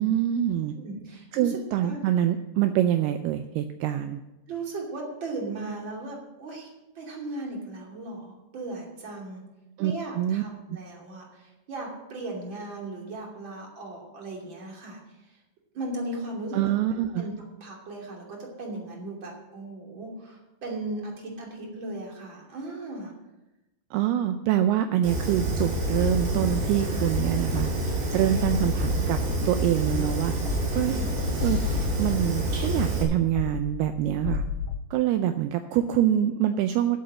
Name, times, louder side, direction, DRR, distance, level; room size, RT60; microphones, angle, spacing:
voice 1, 0.0-0.8 1.3-4.2 9.8-10.4 10.7-10.8 16.5-17.2 23.9-29.2 29.5-30.4 30.7-31.0 31.4-31.6 32.0-34.4 34.9-37.0, right 11 dB, 85° right, 8 dB, 2.3 m, -25 dB
voice 2, 0.7-1.5 1.8-2.0 4.5-9.4 9.8-15.4 15.7-17.3 17.6-23.1 26.3-27.3 28.1-28.5 30.7-31.1, right 2 dB, 30° right, -1 dB, 2.9 m, -37 dB
Fire, 25.0-33.0, right 1 dB, 65° right, 4.6 m, -28 dB
sound 1, 25.8-34.8, left 7 dB, 80° left, 2.8 m, -35 dB
10.5 x 7.9 x 7.6 m, 0.98 s
omnidirectional pair, 5.2 m